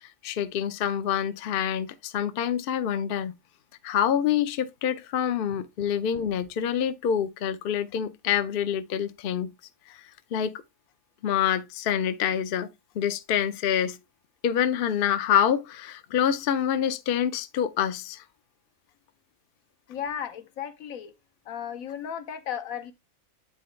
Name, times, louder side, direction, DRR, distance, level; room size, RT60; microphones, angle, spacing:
voice 1, 0.2-3.3 3.8-9.5 10.3-10.5 11.2-12.7 13.0-14.0 14.4-18.2, left 9 dB, 55° left, 0.7 m, -26 dB
voice 2, 19.9-21.1 21.5-22.9, left 8 dB, 80° left, 1.2 m, -35 dB
9.4 x 3.8 x 3.1 m
omnidirectional pair, 1.5 m